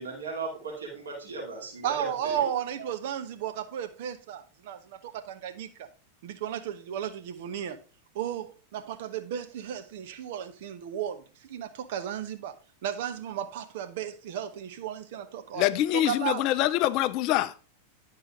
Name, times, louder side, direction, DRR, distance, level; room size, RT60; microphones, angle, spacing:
voice 1, 0.0-2.4, right 3 dB, 70° right, 2.6 m, -37 dB
voice 2, 1.8-5.9 6.2-7.8 8.1-12.5 12.8-15.6 15.9-16.5, right 9 dB, 50° right, 0.9 m, -34 dB
voice 3, 15.5-17.7, left 14 dB, 40° left, 0.4 m, -25 dB
10.5 x 4.8 x 3.6 m
figure-of-eight pair, 90°, 0 cm